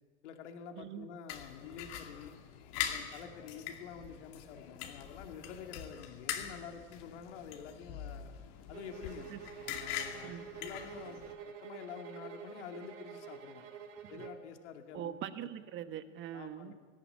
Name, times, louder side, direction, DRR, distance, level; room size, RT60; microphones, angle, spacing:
voice 1, 0.2-2.3 2.9-8.3 8.7-9.3 9.8-11.2 11.6-13.7 14.1-15.2 16.3-16.7, left 7 dB, 65° left, 4 dB, 2.4 m, -48 dB
sound 1, 1.3-11.3, left 9 dB, 50° left, 2.5 m, -43 dB
sound 2, 8.7-14.5, right 7 dB, 75° right, 2.8 m, -48 dB
voice 2, 14.9-16.7, right 10 dB, 30° right, 10 dB, 1.4 m, -42 dB
18.5 x 17.0 x 8.8 m, 1.5 s
hypercardioid pair, 125°, 37 cm